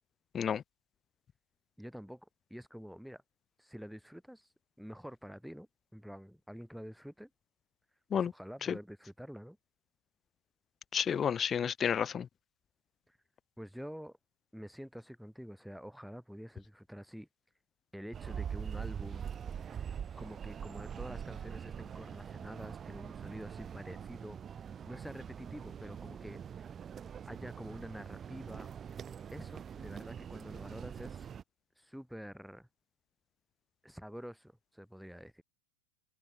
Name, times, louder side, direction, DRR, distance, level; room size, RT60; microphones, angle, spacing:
voice 1, 1.8-3.2 3.6-4.5 4.8-7.3 8.1-9.6 13.1-13.2 13.6-14.2 14.5-17.3 17.9-19.3 20.2-26.4 27.2-28.7 29.3-31.3 31.8-32.7 33.8-35.4, equal, ahead, 5.1 m, -47 dB
voice 2, 10.9-12.3, left 8 dB, 20° left, 0.5 m, -31 dB
sound 1, 18.1-31.4, right 8 dB, 20° right, 1.2 m, -43 dB
figure-of-eight pair, 90°, 0 cm